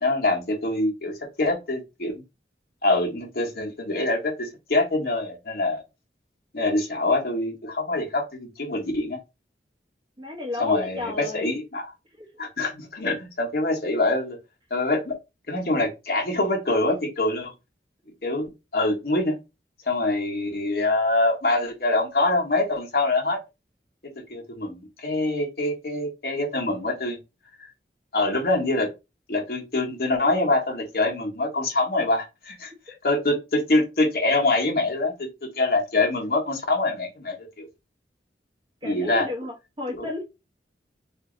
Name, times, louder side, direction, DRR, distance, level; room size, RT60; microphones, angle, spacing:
voice 1, 0.0-2.2 2.8-5.8 6.5-9.2 10.6-11.9 12.4-14.4 14.7-15.1 15.5-17.5 18.2-19.4 19.8-23.4 24.3-27.2 28.1-28.9 29.3-37.7 38.8-39.3 40.0-40.1, left 2 dB, 55° left, 1.1 m, -25 dB
voice 2, 10.2-11.6 12.2-12.3 32.9-33.0 38.8-40.2, left 2 dB, 25° right, 1.0 m, -33 dB
2.9 x 2.7 x 3.7 m
head